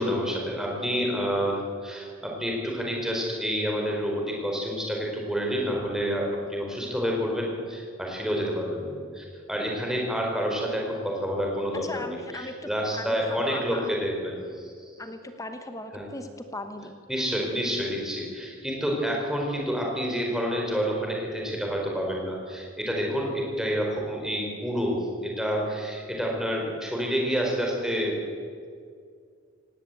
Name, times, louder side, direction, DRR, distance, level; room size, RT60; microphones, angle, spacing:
voice 1, 0.0-14.9 15.9-16.1 17.1-28.2, equal, ahead, -1 dB, 4.4 m, -28 dB
voice 2, 11.7-13.9 15.0-17.0, left 2 dB, 15° left, 7 dB, 1.0 m, -38 dB
18.5 x 17.0 x 8.3 m, 2.2 s
head